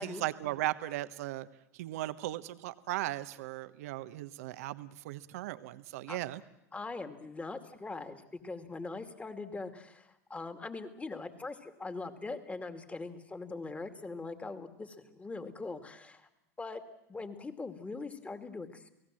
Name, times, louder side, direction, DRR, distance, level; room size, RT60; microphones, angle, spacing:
voice 1, 0.0-1.5 1.8-6.4, right 15 dB, 70° right, 13 dB, 1.1 m, -37 dB
voice 2, 6.7-16.3 16.6-16.8 17.1-18.9, left 3 dB, 15° left, 9 dB, 2.4 m, -41 dB
30.0 x 18.0 x 7.7 m, 0.87 s
hypercardioid pair, 85°, 8 cm